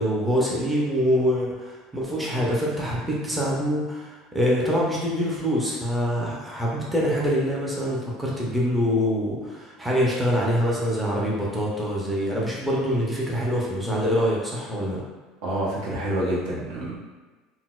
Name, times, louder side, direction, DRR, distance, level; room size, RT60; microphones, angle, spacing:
voice 1, 0.0-15.0, equal, 5° right, -5 dB, 0.5 m, -25 dB
voice 2, 15.4-17.0, right 1 dB, 80° right, -5 dB, 0.8 m, -27 dB
4.0 x 2.0 x 2.3 m, 1.3 s
cardioid pair, 150°, 0 cm